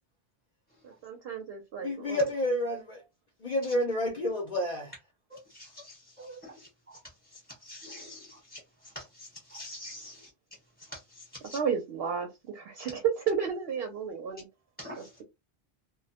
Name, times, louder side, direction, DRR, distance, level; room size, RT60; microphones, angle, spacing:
voice 1, 0.8-2.2 11.5-14.5 15.0-15.2, right 7 dB, 70° right, 0.8 m, -32 dB
voice 2, 1.8-3.0 3.4-4.9, left 1 dB, 50° left, 0.6 m, -29 dB
voice 3, 7.7-8.2 9.5-10.1 11.5-11.6 14.8-15.0, left 1 dB, 15° right, 1.0 m, -43 dB
2.1 x 2.1 x 2.7 m
omnidirectional pair, 1.1 m